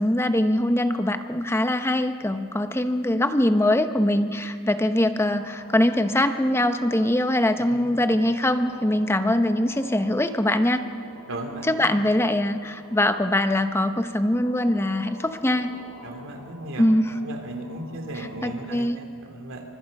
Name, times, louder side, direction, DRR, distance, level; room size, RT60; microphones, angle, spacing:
voice 1, 0.0-10.9 11.6-15.7 16.8-17.2 18.1-19.0, left 1 dB, 10° left, 8 dB, 0.9 m, -22 dB
sound 1, 5.2-18.7, equal, 65° left, 7.0 m, -48 dB
voice 2, 11.3-11.9 16.0-16.9 17.1-19.6, right 1 dB, 60° right, 3 dB, 3.0 m, -36 dB
29.0 x 25.0 x 5.4 m, 2.2 s
head